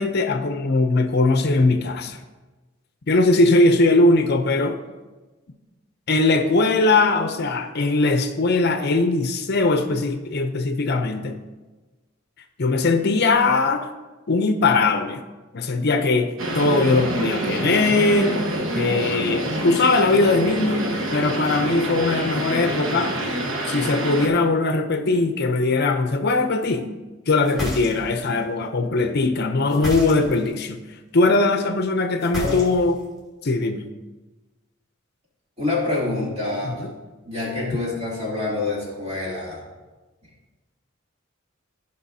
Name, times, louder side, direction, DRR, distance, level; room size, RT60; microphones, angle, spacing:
voice 1, 0.0-2.2 3.1-4.8 6.1-11.4 12.6-13.9 14.3-15.2 15.5-18.4 18.7-23.2 23.7-26.9 27.3-30.8 31.1-33.0 33.4-33.8 36.6-36.9, left 3 dB, 55° left, 7 dB, 0.6 m, -20 dB
sound 1, 16.4-24.3, right 1 dB, 80° right, 1.2 m, -26 dB
sound 2, 27.4-28.3 29.7-30.5 32.2-33.0, left 1 dB, ahead, 2.8 m, -31 dB
voice 2, 35.6-36.8 37.2-39.6, left 3 dB, 35° right, -6 dB, 3.0 m, -26 dB
15.5 x 5.4 x 2.7 m, 1.2 s
head